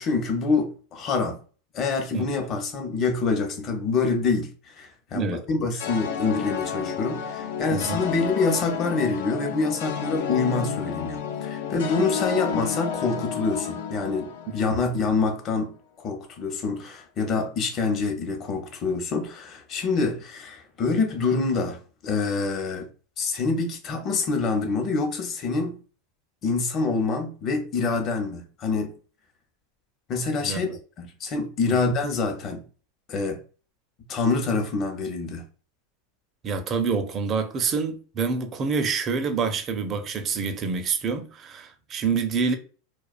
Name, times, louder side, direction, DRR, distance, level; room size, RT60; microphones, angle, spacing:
voice 1, 0.0-1.4 1.7-22.9 23.2-25.8 26.4-28.9 30.1-30.7 31.0-32.6 33.1-33.4 34.1-35.4, left 4 dB, 40° left, 0.7 m, -26 dB
sound 1, 5.8-15.1, left 8 dB, 80° left, 0.3 m, -31 dB
voice 2, 30.4-30.8 31.6-31.8 36.4-42.5, right 5 dB, 35° right, 0.4 m, -27 dB
2.3 x 2.2 x 2.4 m
supercardioid pair, 115°, 0 cm